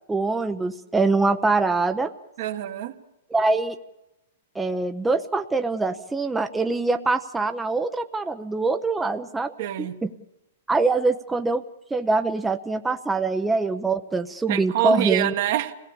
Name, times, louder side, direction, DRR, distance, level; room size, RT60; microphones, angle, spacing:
voice 1, 0.1-2.1 3.3-3.8 4.5-9.5 9.8-10.1 10.7-11.6 11.9-15.3, right 3 dB, 10° right, 6 dB, 0.7 m, -24 dB
voice 2, 2.4-3.0 9.6-10.0 14.5-15.7, right 14 dB, 60° right, 7 dB, 1.5 m, -25 dB
25.0 x 18.0 x 7.1 m, 0.89 s
hypercardioid pair, 135°, 0 cm